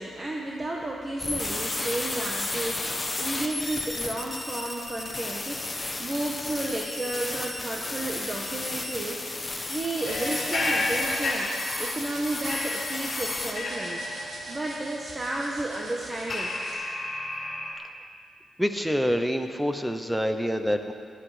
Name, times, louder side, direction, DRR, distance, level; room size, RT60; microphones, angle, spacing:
voice 1, 0.0-5.6 6.0-9.2 9.7-11.5 11.8-14.0 14.5-16.5, right 2 dB, 25° right, -2 dB, 1.2 m, -32 dB
sound 1, 1.2-13.5, left 2 dB, 20° left, 1.3 m, -33 dB
sound 2, 10.0-12.0 12.5-17.7, left 2 dB, 40° left, 4.3 m, -32 dB
sound 3, 10.1-16.7, right 1 dB, 80° right, 3.2 m, -42 dB
voice 2, 18.6-20.9, equal, ahead, 6 dB, 0.8 m, -26 dB
18.5 x 11.5 x 5.0 m, 2.2 s
wide cardioid pair, 145°, 0 cm